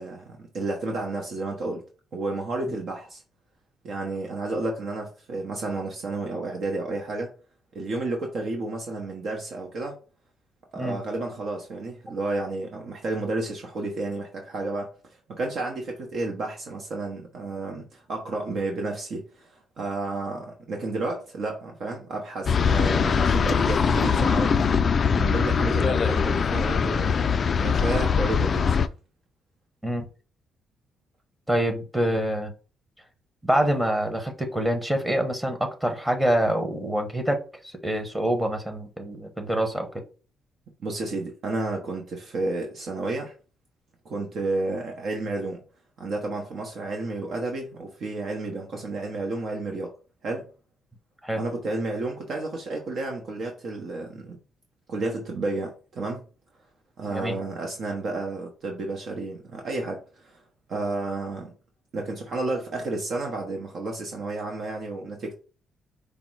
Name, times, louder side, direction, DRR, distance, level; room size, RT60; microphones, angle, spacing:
voice 1, 0.0-1.8 2.1-3.2 3.8-7.3 7.7-10.0 10.7-24.6 25.1-27.3 27.6-28.7 40.8-43.3 44.0-45.6 46.0-49.9 50.2-50.5 51.4-54.4 54.9-56.2 57.0-60.4 60.7-61.5 61.9-65.3, right 2 dB, 60° right, 0.9 m, -31 dB
sound 1, 22.5-28.9, left 6 dB, 45° left, 0.3 m, -22 dB
voice 2, 31.5-32.5 33.4-39.9 51.2-51.4 57.1-57.4, right 1 dB, 10° right, 0.9 m, -26 dB
5.1 x 2.1 x 4.6 m
cardioid pair, 90°, 0 cm